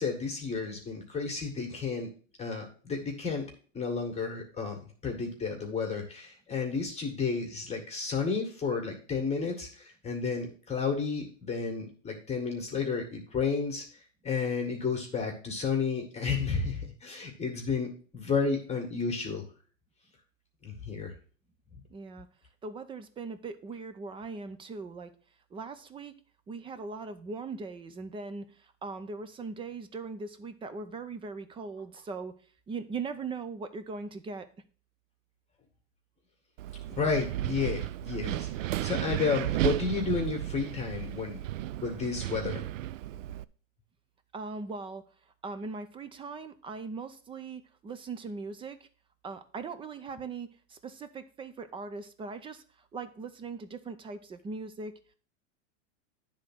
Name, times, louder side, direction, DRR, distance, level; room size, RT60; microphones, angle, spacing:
voice 1, 0.0-2.1 2.4-3.4 3.7-13.8 14.2-19.4 20.6-21.1 36.9-41.4 41.8-42.6, left 5 dB, 15° left, 1 dB, 1.8 m, -32 dB
voice 2, 21.9-22.3 22.6-25.1 25.5-26.1 26.5-32.3 32.7-34.5 44.3-45.0 45.4-48.8 49.2-52.6 52.9-54.9, right 4 dB, 15° right, 11 dB, 0.5 m, -40 dB
Wind, 36.6-43.4, right 14 dB, 85° right, 0.5 m, -34 dB
9.7 x 3.7 x 6.0 m, 0.42 s
supercardioid pair, 130°, 38 cm